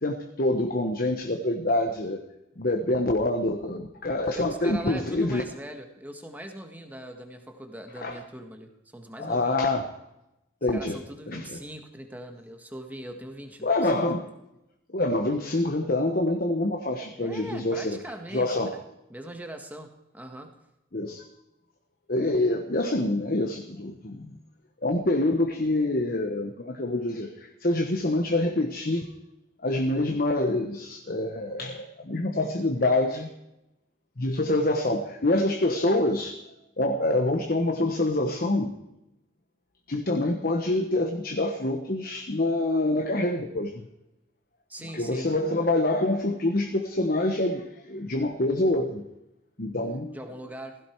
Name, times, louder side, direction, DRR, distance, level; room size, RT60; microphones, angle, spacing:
voice 1, 0.0-2.2 2.6-5.4 8.0-8.1 9.2-9.8 10.6-11.0 11.3-11.6 13.6-14.3 14.9-18.0 18.3-18.7 20.9-21.2 22.1-24.4 24.8-29.1 29.6-33.3 34.2-36.4 36.8-38.7 39.9-43.9 44.9-49.0 49.6-50.2, left 2 dB, 50° left, 4 dB, 1.2 m, -26 dB
voice 2, 4.3-9.6 10.7-14.0 17.2-18.8 19.1-20.5 44.7-45.3 50.1-50.8, right 1 dB, 10° right, 4 dB, 1.7 m, -41 dB
16.5 x 16.0 x 4.7 m, 0.90 s
head